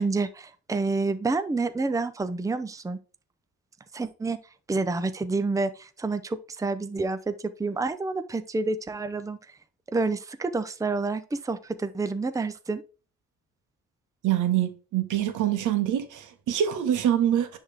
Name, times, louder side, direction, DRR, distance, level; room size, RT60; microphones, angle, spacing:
voice 1, 0.0-3.0 3.9-4.4 4.7-9.4 9.9-12.8, right 3 dB, 10° right, 0.6 m, -28 dB
voice 2, 14.2-17.6, right 10 dB, 80° right, 1.4 m, -25 dB
10.0 x 3.6 x 3.5 m
cardioid pair, 90°, 30 cm